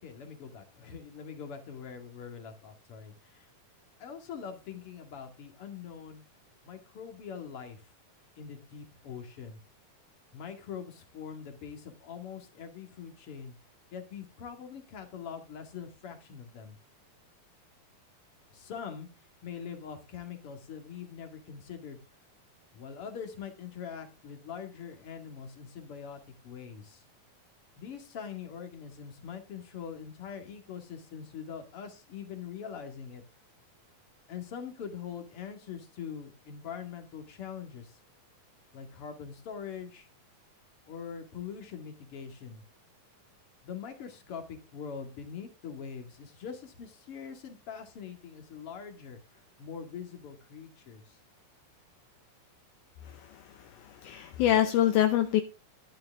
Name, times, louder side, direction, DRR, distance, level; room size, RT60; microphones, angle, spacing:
voice 1, 0.0-3.5 4.0-6.2 6.6-7.8 8.4-9.6 10.3-13.6 13.9-16.8 18.5-19.1 19.4-22.0 22.7-27.0 27.8-33.2 34.3-38.0 38.7-40.1 40.9-42.6 43.6-49.2 49.6-51.2, left 7 dB, 40° left, 5 dB, 2.5 m, -43 dB
voice 2, 53.0-55.4, left 11 dB, 75° left, 7 dB, 1.9 m, -26 dB
11.5 x 11.0 x 3.6 m, 0.27 s
omnidirectional pair, 4.5 m